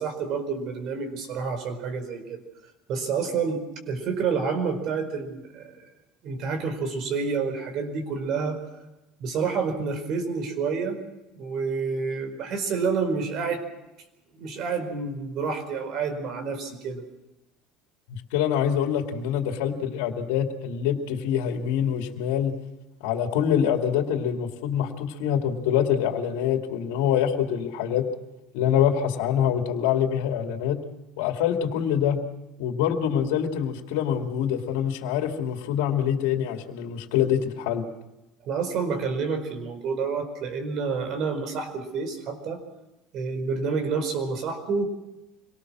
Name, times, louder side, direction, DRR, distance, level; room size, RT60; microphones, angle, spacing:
voice 1, 0.0-2.4 2.9-5.9 6.2-8.6 9.2-11.0 11.3-13.6 14.3-17.0 38.5-42.6 43.1-44.9, right 5 dB, 55° right, 7 dB, 4.7 m, -29 dB
voice 2, 18.1-22.5 23.0-28.0 28.5-30.8 31.2-32.2 32.6-37.9, left 9 dB, 85° left, 4 dB, 2.4 m, -25 dB
25.5 x 19.0 x 6.2 m, 0.97 s
supercardioid pair, 125°, 0 cm